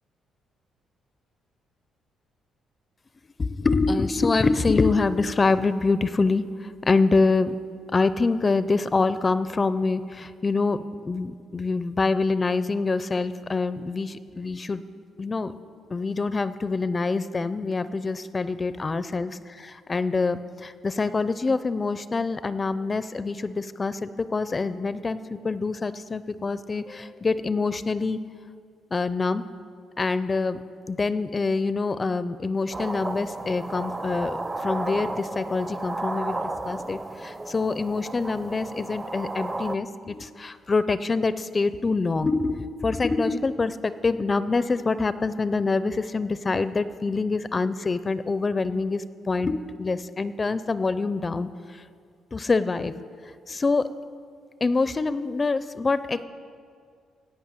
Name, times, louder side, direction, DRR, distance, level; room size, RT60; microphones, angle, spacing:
voice 1, 3.4-7.6 7.9-10.8 11.0-14.8 15.2-15.5 15.9-28.2 28.9-29.5 30.0-30.6 30.9-51.5 52.3-52.9 53.5-53.9 54.6-56.3, left 3 dB, 30° left, 14 dB, 0.4 m, -25 dB
sound 1, 32.7-39.8, right 2 dB, 20° right, 0.6 m, -33 dB
17.0 x 5.8 x 8.2 m, 2.2 s
cardioid pair, 100°, 0 cm